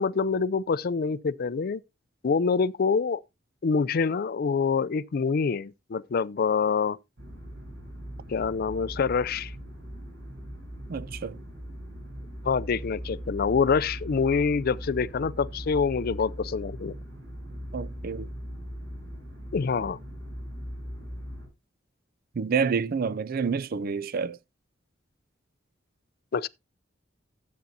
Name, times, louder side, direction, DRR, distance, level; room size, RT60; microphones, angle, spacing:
voice 1, 0.0-1.8 2.2-3.2 3.6-7.0 8.3-9.5 12.4-16.9 19.5-20.0 26.3-26.5, left 5 dB, 50° left, 0.4 m, -26 dB
sound 1, 7.2-21.5, equal, 70° right, 4.7 m, -40 dB
voice 2, 10.9-11.4 17.7-18.3 22.4-24.4, right 5 dB, 50° right, 0.4 m, -28 dB
13.0 x 8.3 x 2.7 m
head